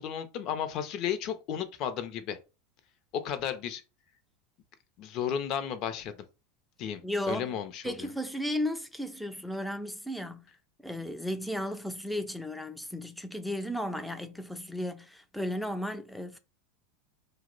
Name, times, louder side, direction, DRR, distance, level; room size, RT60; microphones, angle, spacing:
voice 1, 0.0-2.4 3.1-3.8 5.0-6.3 6.8-7.0 7.3-8.1, left 9 dB, 50° left, 0.5 m, -33 dB
voice 2, 7.0-7.6 7.8-10.4 10.8-16.4, left 1 dB, ahead, 0.4 m, -34 dB
2.8 x 2.0 x 3.8 m
hypercardioid pair, 90°, 0 cm